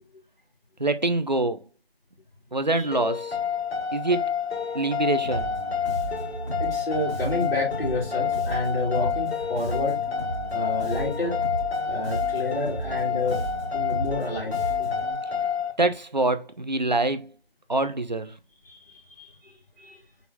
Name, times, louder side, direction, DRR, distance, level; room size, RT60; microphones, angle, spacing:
voice 1, 0.8-1.6 2.5-3.3 3.9-4.2 4.7-5.5 15.8-17.3 17.7-18.3, right 2 dB, 45° right, 0.4 m, -25 dB
sound 1, 2.9-15.7, left 7 dB, 80° left, 1.0 m, -29 dB
Bass guitar, 5.2-15.1, right 1 dB, 30° left, 2.8 m, -35 dB
voice 2, 6.6-10.0 10.5-11.3 11.9-13.4 13.7-14.9 18.6-20.0, left 2 dB, 65° left, 2.6 m, -30 dB
4.6 x 3.9 x 2.7 m
figure-of-eight pair, 165°, 31 cm